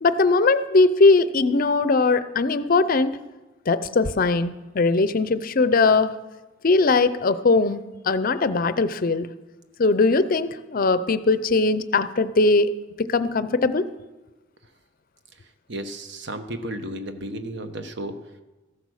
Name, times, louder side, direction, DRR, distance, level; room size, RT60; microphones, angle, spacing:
voice 1, 0.0-3.2 3.7-6.1 6.6-9.3 9.8-12.8 13.1-13.9, left 3 dB, 45° left, 14 dB, 0.5 m, -20 dB
voice 2, 15.7-18.1, right 1 dB, 60° right, 8 dB, 1.0 m, -33 dB
14.5 x 8.2 x 6.4 m, 1.1 s
head